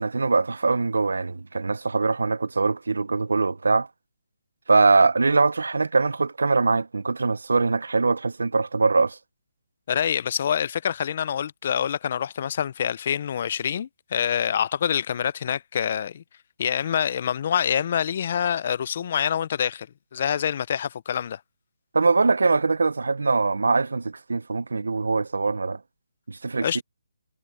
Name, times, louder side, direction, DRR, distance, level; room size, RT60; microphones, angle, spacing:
voice 1, 0.0-3.9 4.7-9.2 21.9-25.8 26.3-26.8, right 3 dB, 90° right, 0.6 m, -22 dB
voice 2, 9.9-16.2 16.6-19.9 20.1-21.4 26.6-26.8, left 8 dB, 40° left, 0.5 m, -26 dB
hypercardioid pair, 165°, 0 cm